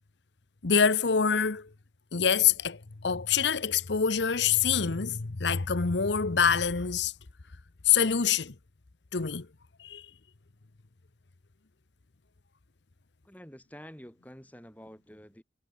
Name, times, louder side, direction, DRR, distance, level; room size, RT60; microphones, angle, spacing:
voice 1, 0.6-1.7 2.1-7.1 7.9-8.5 9.1-9.5 9.8-10.0, left 7 dB, 70° left, 0.9 m, -25 dB
voice 2, 13.2-15.4, equal, 10° left, 5.8 m, -48 dB
head